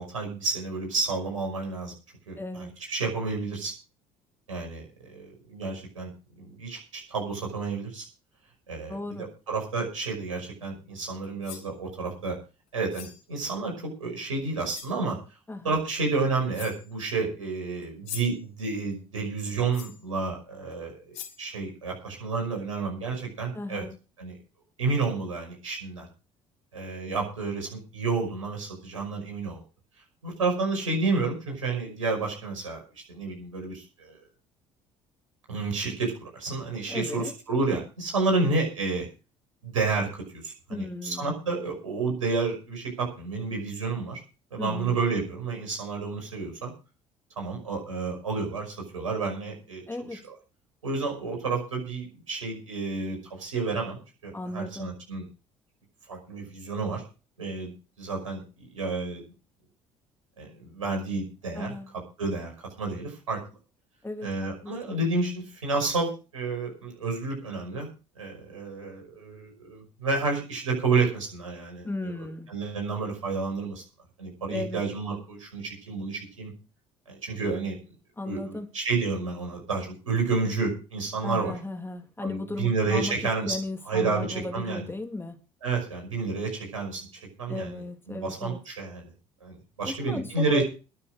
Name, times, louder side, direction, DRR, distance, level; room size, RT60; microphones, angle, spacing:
voice 1, 0.0-1.9 2.3-3.7 4.5-6.1 6.4-8.1 8.7-12.4 12.7-15.2 15.6-23.8 24.2-24.4 24.8-26.1 26.7-29.6 30.2-32.8 33.1-34.2 35.5-39.1 39.6-44.2 44.5-46.7 47.4-50.2 50.8-55.2 56.1-57.0 57.4-58.4 58.7-59.2 60.4-61.8 62.2-62.5 62.8-63.4 64.2-67.9 68.2-72.1 72.5-73.8 74.2-76.5 77.1-77.8 78.2-81.5 82.2-83.6 83.9-84.9 85.6-87.0 87.4-87.8 88.1-89.1 89.4-90.6, right 4 dB, 80° right, 5.7 m, -30 dB
voice 2, 2.4-2.7 8.9-9.3 15.5-15.8 23.5-24.0 36.9-37.3 40.7-41.3 44.6-45.0 49.9-50.2 54.3-54.9 61.5-61.9 64.0-65.0 71.8-72.5 74.5-74.8 78.2-78.7 81.2-83.2 83.5-85.4 87.5-88.6 89.8-90.6, left 2 dB, 15° left, 2.7 m, -35 dB
sound 1, 11.2-11.7 12.9-13.3 14.2-14.3 14.7-15.0 16.1-16.2 16.5-16.9 17.8-18.5 19.7-20.1 20.7-20.8 21.1-21.5, left 10 dB, 60° left, 3.0 m, -42 dB
21.5 x 7.3 x 5.0 m
figure-of-eight pair, 55°, 17 cm